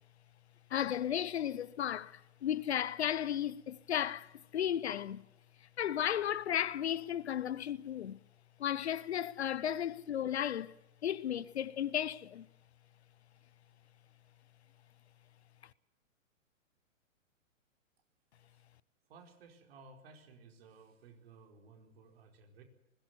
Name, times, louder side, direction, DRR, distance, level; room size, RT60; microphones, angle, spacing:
voice 1, 0.7-5.2 5.8-8.2 8.6-10.7 11.0-12.5, left 10 dB, 55° left, 0.9 m, -34 dB
voice 2, 19.1-22.6, right 4 dB, 50° right, 4.7 m, -57 dB
21.0 x 18.0 x 8.1 m
figure-of-eight pair, 115°, 40 cm